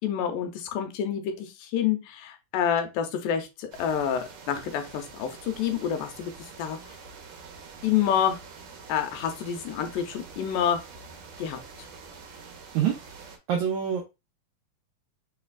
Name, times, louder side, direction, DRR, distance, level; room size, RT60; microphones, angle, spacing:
voice 1, 0.0-6.8 7.8-8.4 8.9-10.8 11.4-11.6, left 9 dB, 80° left, 6 dB, 2.2 m, -28 dB
sound 1, 3.7-13.4, right 5 dB, 70° right, 1.7 m, -46 dB
voice 2, 13.5-14.1, right 8 dB, 90° right, 1 dB, 1.7 m, -25 dB
6.4 x 3.2 x 2.3 m, 0.25 s
omnidirectional pair, 4.1 m